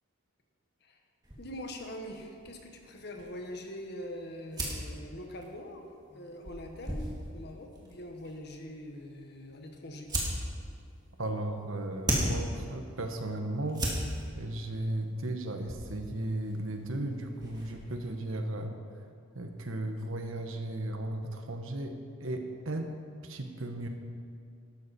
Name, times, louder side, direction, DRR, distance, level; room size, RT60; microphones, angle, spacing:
sound 1, 1.2-18.1, right 1 dB, 20° right, 2.0 m, -39 dB
voice 1, 1.4-5.8 6.1-10.1, left 1 dB, 50° left, 3 dB, 1.5 m, -43 dB
voice 2, 11.2-13.9 14.4-18.7 19.3-22.9 23.2-23.9, right 1 dB, 75° right, 5 dB, 1.2 m, -35 dB
12.5 x 12.0 x 4.3 m, 2.5 s
head